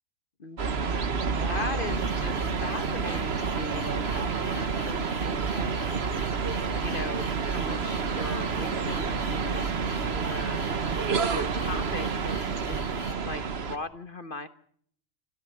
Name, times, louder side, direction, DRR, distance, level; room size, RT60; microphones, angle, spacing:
voice 1, 0.4-14.5, left 3 dB, 45° left, 12 dB, 1.2 m, -39 dB
sound 1, 0.6-13.8, right 5 dB, 55° right, 1.4 m, -29 dB
sound 2, 1.8-13.2, left 4 dB, 75° left, 2.2 m, -43 dB
Wind instrument woodwind instrument, 2.9-8.4, right 1 dB, 20° left, 6.7 m, -53 dB
26.5 x 14.0 x 8.6 m, 0.62 s
omnidirectional pair, 1.4 m